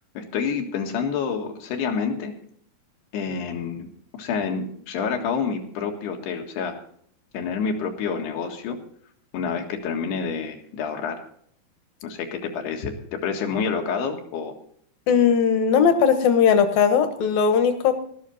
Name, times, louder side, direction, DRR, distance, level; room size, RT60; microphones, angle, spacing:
voice 1, 0.2-2.3 3.1-3.9 4.1-6.8 7.3-8.8 9.3-11.3 12.0-14.5, left 6 dB, 85° left, 4 dB, 3.8 m, -28 dB
voice 2, 15.1-18.0, left 7 dB, 70° left, 9 dB, 2.8 m, -19 dB
13.5 x 12.5 x 4.1 m, 0.64 s
omnidirectional pair, 4.6 m